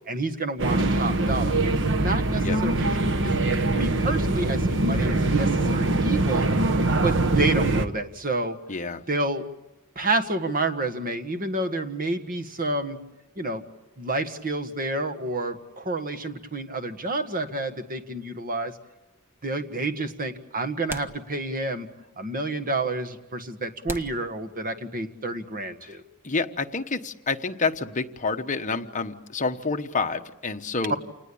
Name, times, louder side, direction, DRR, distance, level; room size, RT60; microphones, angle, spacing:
voice 1, 0.1-1.6 1.9-3.4 3.7-6.5 7.0-8.6 9.1-9.5 9.9-13.0 13.3-13.6 14.0-18.7 19.4-21.9 22.2-26.0, right 2 dB, 40° right, 8 dB, 1.7 m, -29 dB
sound 1, 0.6-7.9, right 2 dB, 60° right, 1.3 m, -23 dB
voice 2, 8.7-9.0 25.8-26.0 26.2-30.9, left 4 dB, 35° left, 6 dB, 1.2 m, -28 dB
sound 2, 20.9-21.8 22.1-22.2 22.9-23.0 23.8-25.1, equal, 10° right, 1.2 m, -40 dB
28.5 x 20.0 x 8.7 m, 0.98 s
head